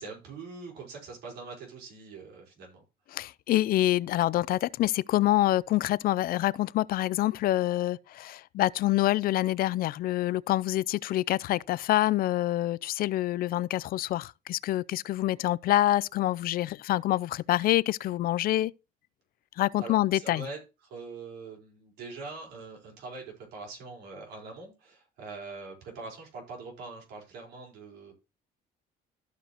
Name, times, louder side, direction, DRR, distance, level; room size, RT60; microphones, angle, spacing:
voice 1, 0.0-2.8 19.8-20.6 20.8-28.1, right 3 dB, 80° right, 4.4 m, -43 dB
voice 2, 3.1-18.7 19.6-20.5, left 15 dB, 60° left, 0.4 m, -26 dB
14.5 x 5.1 x 2.9 m
cardioid pair, 110°, 17 cm